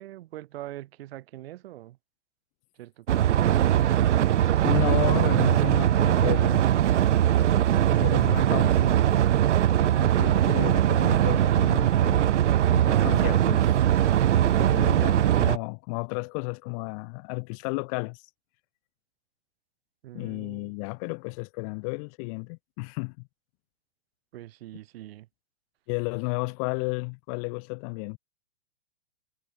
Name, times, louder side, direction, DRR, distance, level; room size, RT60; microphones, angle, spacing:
voice 1, 0.0-2.0 2.8-3.4 5.1-5.4 20.0-20.7 24.3-25.3, right 15 dB, 55° right, 4.5 m, -43 dB
sound 1, 3.1-15.6, right 11 dB, 80° right, 0.6 m, -21 dB
voice 2, 4.6-6.6 7.9-8.9 9.7-12.4 12.7-13.8 14.4-18.3 20.1-23.2 25.9-28.2, left 35 dB, 30° left, 0.5 m, -33 dB
hypercardioid pair, 115°, 35 cm